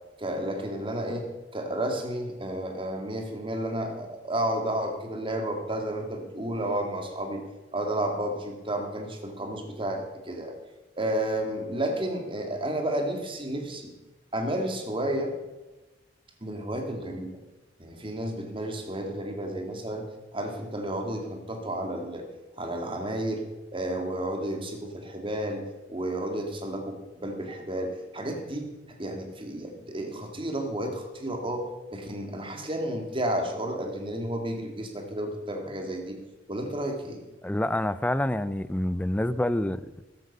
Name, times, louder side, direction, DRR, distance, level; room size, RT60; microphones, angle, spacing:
voice 1, 0.2-7.4 7.7-10.6 11.0-13.9 14.3-15.3 16.4-17.3 17.8-20.1 20.3-22.3 22.6-23.5 23.7-36.2 36.5-37.2, right 1 dB, 30° right, 2.0 m, -32 dB
voice 2, 37.4-40.0, left 1 dB, 10° left, 0.4 m, -27 dB
14.0 x 12.0 x 5.4 m
head